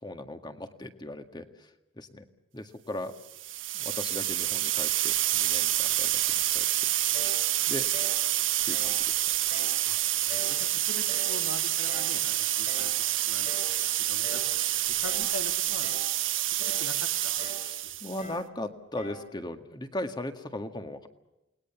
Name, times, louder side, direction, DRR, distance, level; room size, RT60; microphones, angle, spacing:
voice 1, 0.0-2.3 2.5-3.2 3.7-6.9 7.7-7.9 8.7-9.2 17.6-21.1, left 1 dB, 20° left, 7 dB, 1.8 m, -38 dB
sound 1, 3.3-18.2, right 14 dB, 70° right, 1.5 m, -28 dB
sound 2, 7.1-7.4 7.9-8.2 8.7-9.0 9.5-9.8 10.3-10.6 11.1-11.4 11.9-12.2 12.7-13.0 13.4-13.8 14.2-14.5 15.0-15.4 15.8-16.2 16.6-16.9 17.4-17.7 18.2-18.5 19.0-19.3, equal, 40° left, 5.7 m, -43 dB
voice 2, 9.8-13.5 13.8-14.6 14.9-15.9 16.6-18.0, left 3 dB, 80° left, 7 dB, 2.3 m, -43 dB
29.0 x 20.5 x 7.2 m, 0.94 s
head